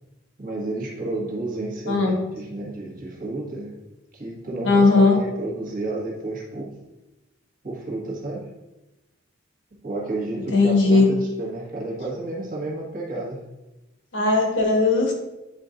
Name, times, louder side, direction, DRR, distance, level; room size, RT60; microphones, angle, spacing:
voice 1, 0.4-3.8 4.1-6.7 7.6-8.5 9.8-13.4, right 2 dB, 45° right, -4 dB, 1.6 m, -31 dB
voice 2, 4.6-5.2 10.5-11.0 14.1-15.1, left 3 dB, 80° left, 0 dB, 1.4 m, -17 dB
9.8 x 4.1 x 2.6 m, 1.0 s
head